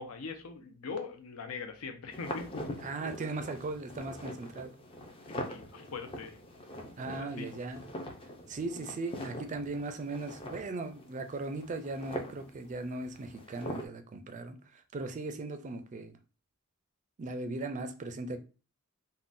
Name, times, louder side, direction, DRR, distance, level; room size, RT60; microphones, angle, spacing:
voice 1, 0.0-2.7 5.3-6.4 7.2-7.5, left 4 dB, 80° left, 0.6 m, -41 dB
sound 1, 2.1-13.9, left 1 dB, 25° left, 0.4 m, -43 dB
voice 2, 2.8-4.7 7.0-7.8 8.5-16.2 17.2-18.4, right 3 dB, 35° right, 0.4 m, -38 dB
3.7 x 2.1 x 2.5 m
head